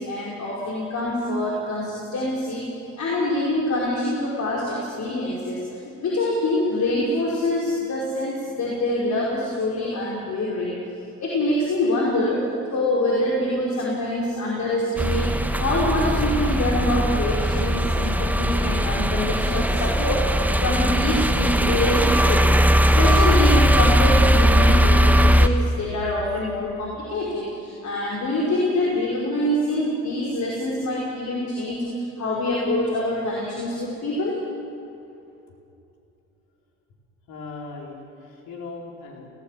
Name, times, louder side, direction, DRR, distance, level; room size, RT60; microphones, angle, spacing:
voice 1, 0.0-2.7 3.0-5.6 6.0-10.8 11.2-31.9 32.2-34.5, left 1 dB, 45° left, -5 dB, 4.9 m, -25 dB
sound 1, 15.0-25.5, equal, 5° right, 1.1 m, -19 dB
voice 2, 37.3-39.3, left 3 dB, 60° left, -1 dB, 4.5 m, -38 dB
19.5 x 18.0 x 7.6 m, 2.7 s
figure-of-eight pair, 55°, 40 cm